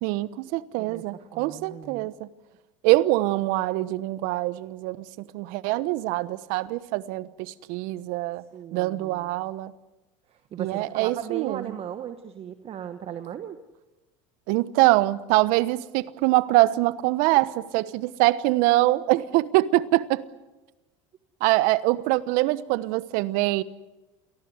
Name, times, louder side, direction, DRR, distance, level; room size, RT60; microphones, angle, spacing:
voice 1, 0.0-2.3 2.8-5.0 5.3-8.4 8.7-9.7 10.6-11.6 14.5-20.2 21.4-23.6, right 18 dB, 65° right, 1.1 m, -24 dB
voice 2, 0.8-2.1 8.5-9.5 10.3-13.6 17.3-17.4, right 9 dB, 40° right, 1.4 m, -37 dB
28.5 x 19.0 x 8.1 m
hypercardioid pair, 95°, 16 cm